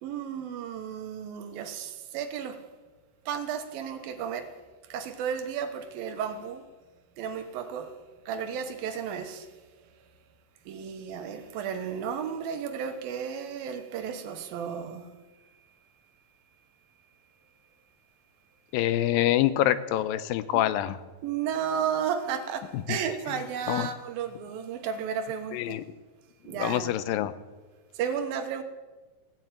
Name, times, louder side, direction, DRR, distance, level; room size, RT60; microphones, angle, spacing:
voice 1, 0.0-2.6 3.3-4.5 4.8-6.7 7.2-8.0 8.3-9.6 10.7-15.1 20.5-20.6 21.2-25.8 26.4-27.0 27.9-28.6, right 7 dB, 85° right, 8 dB, 3.0 m, -33 dB
voice 2, 18.7-21.0 23.7-23.9 25.5-25.8 26.6-27.3, left 13 dB, 85° left, 14 dB, 2.4 m, -25 dB
16.5 x 7.9 x 9.0 m, 1.3 s
omnidirectional pair, 4.1 m